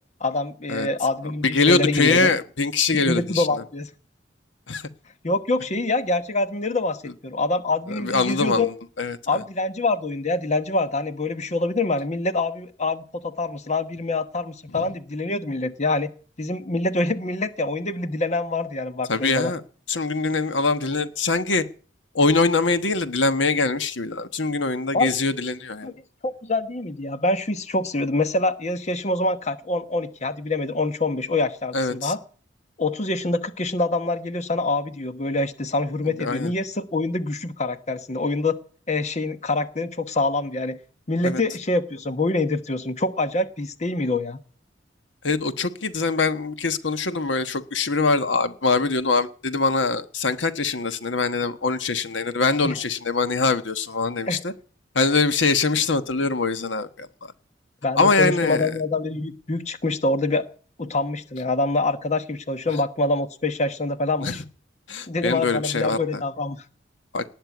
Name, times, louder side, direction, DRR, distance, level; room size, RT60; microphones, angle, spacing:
voice 1, 0.2-2.3 2.9-3.9 5.2-8.7 9.3-16.1 16.4-19.5 24.9-25.1 25.8-25.9 26.2-32.2 32.8-38.6 38.9-40.8 41.1-44.4 52.6-52.8 54.3-54.4 57.8-60.4 60.8-64.4 65.1-66.6, left 2 dB, 40° left, 1.1 m, -25 dB
voice 2, 1.4-3.6 4.7-4.9 8.0-9.2 14.7-14.8 19.1-19.6 19.9-21.6 22.1-25.9 31.7-32.1 36.2-36.5 41.2-41.4 45.2-54.5 54.9-57.3 58.0-58.7 64.2-64.4 64.9-66.2 67.1-67.2, left 3 dB, 85° left, 1.2 m, -23 dB
18.5 x 6.7 x 9.4 m
head